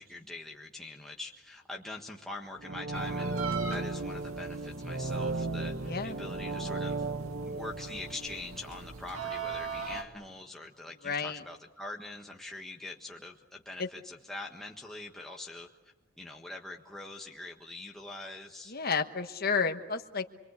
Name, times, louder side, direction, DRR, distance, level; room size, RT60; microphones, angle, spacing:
voice 1, 0.0-7.0 7.4-15.7 16.2-18.7, left 2 dB, ahead, -1 dB, 1.5 m, -43 dB
sound 1, 2.6-9.4 9.8-9.9, right 3 dB, 55° right, 1.1 m, -36 dB
sound 2, 2.9-10.0, right 5 dB, 75° right, 2.3 m, -42 dB
voice 2, 5.8-6.2 11.0-11.4 13.8-13.9 18.7-20.2, left 5 dB, 45° left, 5 dB, 1.3 m, -31 dB
27.5 x 23.0 x 8.4 m, 1.0 s
head